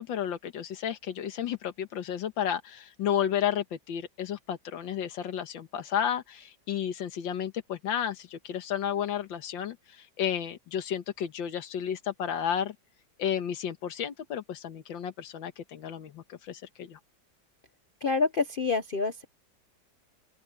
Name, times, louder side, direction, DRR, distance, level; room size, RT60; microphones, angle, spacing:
voice 1, 0.0-12.8 13.2-17.0, left 9 dB, 90° left, 1.9 m, -32 dB
voice 2, 18.0-19.2, left 4 dB, 65° left, 0.5 m, -27 dB
open air
omnidirectional pair, 2.0 m